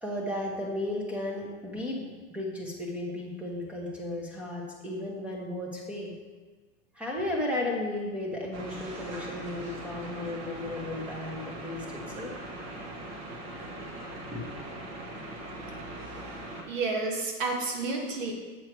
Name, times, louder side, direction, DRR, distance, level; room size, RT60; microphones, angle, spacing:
voice 1, 0.0-6.1 6.9-12.3 14.3-14.4, left 1 dB, 5° right, -1 dB, 1.1 m, -34 dB
sound 1, 8.5-16.6, right 1 dB, 45° right, 1.5 m, -40 dB
voice 2, 16.7-18.4, right 3 dB, 80° right, 2 dB, 1.8 m, -30 dB
8.0 x 6.4 x 4.6 m, 1.3 s
supercardioid pair, 165°, 38 cm